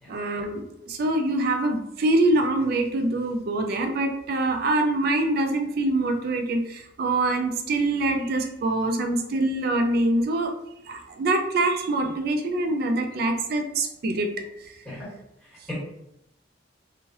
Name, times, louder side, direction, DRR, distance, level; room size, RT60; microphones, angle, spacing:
voice 1, 0.1-10.5 10.9-14.3 14.7-14.8, right 2 dB, 50° right, 5 dB, 0.4 m, -24 dB
voice 2, 15.4-15.7, left 1 dB, 5° left, -10 dB, 1.5 m, -39 dB
3.1 x 2.4 x 2.8 m, 0.82 s
head